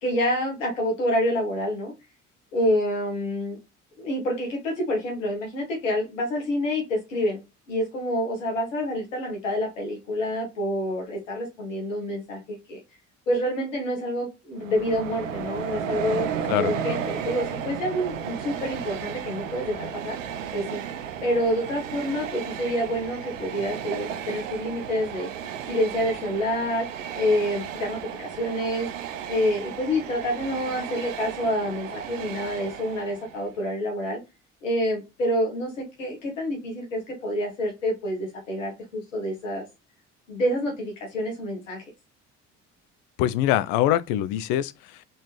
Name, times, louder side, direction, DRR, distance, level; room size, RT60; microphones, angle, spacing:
voice 1, 0.0-1.9 2.5-3.6 4.0-7.4 7.7-12.8 13.3-16.3 16.6-20.2 20.5-20.8 21.2-25.3 25.7-26.9 27.1-28.9 29.3-34.2 34.6-39.6 40.3-41.8, equal, 85° left, 1.9 m, -27 dB
Train, 14.6-33.5, right 8 dB, 85° right, 0.6 m, -34 dB
voice 2, 43.2-45.0, left 12 dB, 65° left, 0.6 m, -24 dB
4.2 x 3.9 x 3.0 m
hypercardioid pair, 50°, 37 cm